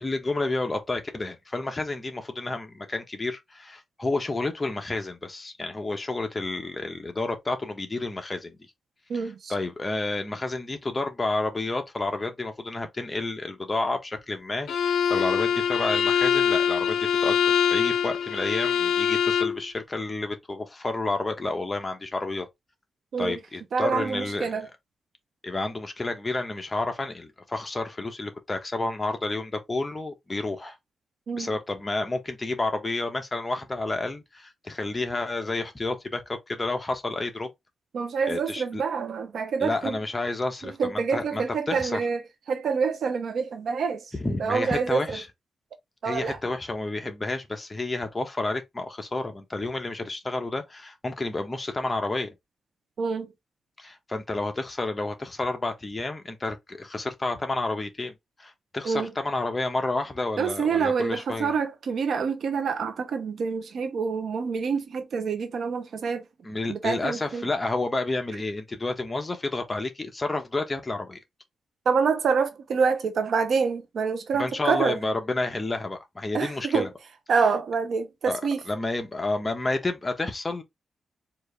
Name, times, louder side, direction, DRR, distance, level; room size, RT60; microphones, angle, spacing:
voice 1, 0.0-8.7 9.5-22.5 23.2-24.7 25.4-30.8 31.4-37.5 38.3-38.8 39.6-42.0 44.1-45.3 46.0-52.3 53.8-61.5 66.4-71.2 74.3-76.9 78.2-78.4 78.7-80.6, left 2 dB, 25° left, 1.1 m, -30 dB
voice 2, 9.1-9.5 23.1-23.4 23.7-24.7 31.3-31.5 37.9-40.0 40.6-42.2 42.5-44.1 44.4-45.2 46.0-46.4 53.0-53.3 58.8-59.1 60.4-66.2 66.7-67.5 71.8-75.0 76.3-76.9 77.3-78.6, right 5 dB, 70° right, 0.8 m, -26 dB
Bowed string instrument, 14.7-19.6, left 8 dB, 85° left, 0.5 m, -24 dB
4.5 x 2.7 x 3.3 m
cardioid pair, 95°, 0 cm